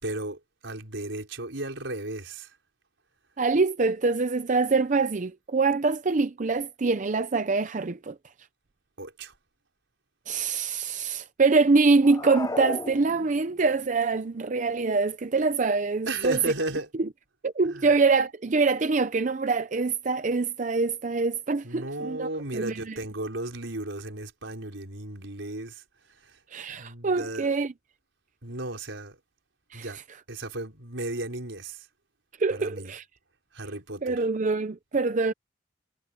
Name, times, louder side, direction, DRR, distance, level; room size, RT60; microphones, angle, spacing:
voice 1, 0.0-2.5 9.0-9.3 16.1-16.9 17.6-17.9 21.6-26.4 26.7-27.6 28.4-29.2 29.7-30.0 30.3-31.9 32.5-32.9 33.5-34.3, right 2 dB, 85° right, 4.7 m, -35 dB
voice 2, 3.4-8.2 10.3-16.4 17.4-23.0 26.5-27.7 29.7-29.9 32.4-33.0 34.0-35.3, right 4 dB, 40° right, 0.5 m, -25 dB
sound 1, 12.0-13.6, left 2 dB, 20° left, 0.7 m, -34 dB
head